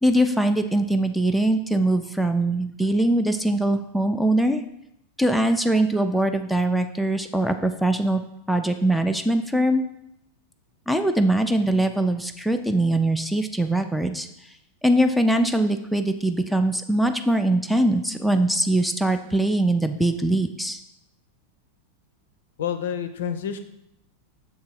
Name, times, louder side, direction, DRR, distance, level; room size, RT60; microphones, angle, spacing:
voice 1, 0.0-4.6 5.2-8.2 8.5-9.8 10.9-14.3 14.8-20.8, right 1 dB, ahead, 7 dB, 0.4 m, -22 dB
voice 2, 22.6-23.6, left 8 dB, 60° left, 9 dB, 0.5 m, -28 dB
6.7 x 3.7 x 4.4 m, 0.80 s
figure-of-eight pair, 90°, 0 cm